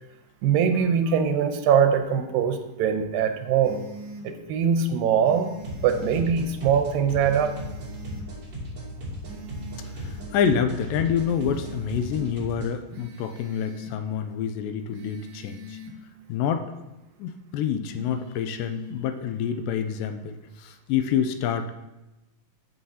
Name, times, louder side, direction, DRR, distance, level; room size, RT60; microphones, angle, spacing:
voice 1, 0.4-3.8 4.2-5.5 5.8-7.6, right 7 dB, 90° right, 6 dB, 2.4 m, -22 dB
sound 1, 3.6-4.3 5.2-6.3 7.2-8.3 9.2-10.3 11.2-12.3 12.9-14.0 14.9-16.0 17.9-19.0, right 1 dB, 70° right, 2.5 m, -42 dB
sound 2, 5.6-12.7, equal, 35° right, 2.9 m, -37 dB
voice 2, 10.0-15.8 16.3-16.7 17.2-21.7, left 8 dB, 80° left, 8 dB, 2.2 m, -27 dB
14.0 x 5.6 x 2.8 m, 0.98 s
omnidirectional pair, 4.1 m